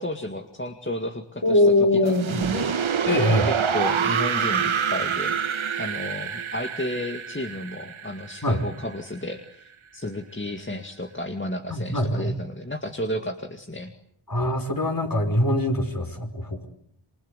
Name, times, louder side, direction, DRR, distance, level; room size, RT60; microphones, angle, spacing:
voice 1, 0.0-1.6 1.9-2.8 3.4-5.4 5.8-13.9, left 1 dB, 25° left, 5 dB, 2.1 m, -32 dB
voice 2, 1.4-2.4 3.0-3.5 8.4-8.6 11.7-12.3 14.3-16.7, left 1 dB, 40° left, 5 dB, 5.3 m, -22 dB
sound 1, 2.1-9.0, right 7 dB, 70° right, 1.1 m, -26 dB
28.0 x 24.0 x 8.2 m, 0.68 s
wide cardioid pair, 50°, 50 cm